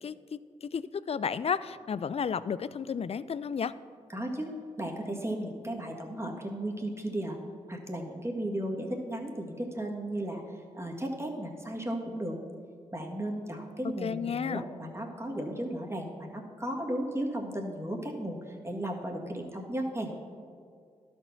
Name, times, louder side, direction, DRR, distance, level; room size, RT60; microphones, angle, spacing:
voice 1, 0.0-3.7 13.8-14.6, left 6 dB, 45° left, 16 dB, 0.4 m, -33 dB
voice 2, 4.1-7.4 7.7-12.4 12.9-20.1, right 1 dB, 20° right, 0 dB, 1.7 m, -35 dB
12.0 x 4.5 x 5.9 m, 2.2 s
supercardioid pair, 40°, 14 cm